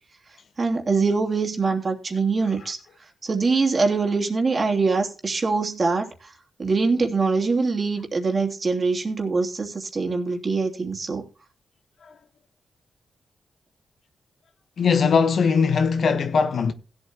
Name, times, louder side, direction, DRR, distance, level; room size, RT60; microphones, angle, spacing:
voice 1, 0.6-2.8 3.2-6.3 6.6-11.3, right 4 dB, 45° right, 2.9 m, -23 dB
voice 2, 14.8-16.7, left 5 dB, 70° left, 1.2 m, -20 dB
16.5 x 8.2 x 3.0 m
cardioid pair, 60°, 0 cm